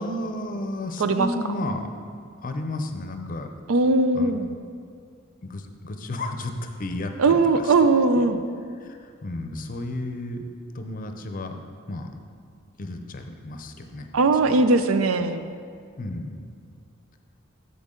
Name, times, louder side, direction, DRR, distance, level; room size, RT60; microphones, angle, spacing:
voice 1, 0.0-1.9 2.4-3.5 4.1-4.3 5.4-7.7 8.2-8.3 8.8-10.4 10.7-11.6 11.9-12.1 12.8-14.1 14.5-14.6 16.0-16.3, left 1 dB, 40° left, 6 dB, 0.6 m, -33 dB
voice 2, 3.7-4.5 7.2-8.4 14.1-15.5, right 3 dB, 90° right, 10 dB, 0.5 m, -20 dB
8.1 x 7.0 x 3.7 m, 2.3 s
head